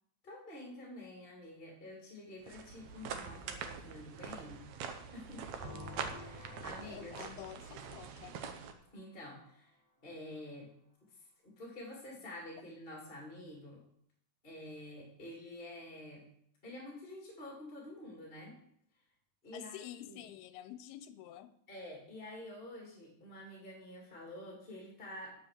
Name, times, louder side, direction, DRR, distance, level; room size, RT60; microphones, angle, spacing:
voice 1, 0.2-4.7 5.1-5.5 6.1-7.1 8.9-9.8 10.0-10.7 11.1-13.8 14.4-16.2 16.6-18.5 19.4-20.2 21.7-25.4, left 1 dB, 15° left, -2 dB, 2.4 m, -48 dB
sound 1, 2.4-8.7, right 6 dB, 75° right, 1.7 m, -44 dB
sound 2, 5.6-9.3, left 2 dB, 5° right, 3.4 m, -51 dB
voice 2, 6.8-8.4 19.5-21.6, left 12 dB, 90° left, 11 dB, 2.6 m, -48 dB
9.6 x 7.5 x 6.8 m, 0.69 s
omnidirectional pair, 4.4 m